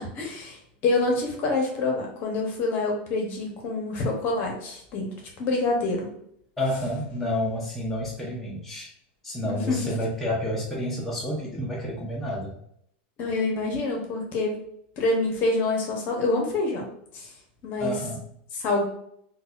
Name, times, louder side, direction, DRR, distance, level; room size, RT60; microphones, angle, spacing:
voice 1, 0.0-6.1 9.4-10.0 13.2-14.6 15.0-16.9 17.1-17.3 17.6-18.0 18.5-18.8, left 2 dB, 40° left, 1 dB, 0.8 m, -27 dB
voice 2, 6.6-8.9 9.2-12.5 17.8-18.2, left 1 dB, 5° left, -6 dB, 0.5 m, -29 dB
3.9 x 2.2 x 2.4 m, 0.70 s
supercardioid pair, 155°, 5 cm